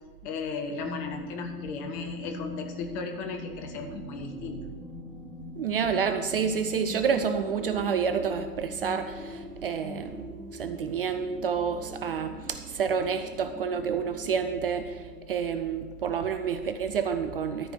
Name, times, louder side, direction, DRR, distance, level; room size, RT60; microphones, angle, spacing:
voice 1, 0.2-4.7, left 4 dB, 20° left, 4 dB, 0.6 m, -36 dB
sound 1, 0.8-15.4, left 1 dB, ahead, 1.7 m, -43 dB
voice 2, 5.6-10.3 10.5-15.0 15.3-17.7, right 6 dB, 40° right, 9 dB, 0.5 m, -29 dB
13.0 x 4.8 x 6.3 m, 1.4 s
figure-of-eight pair, 105°, 48 cm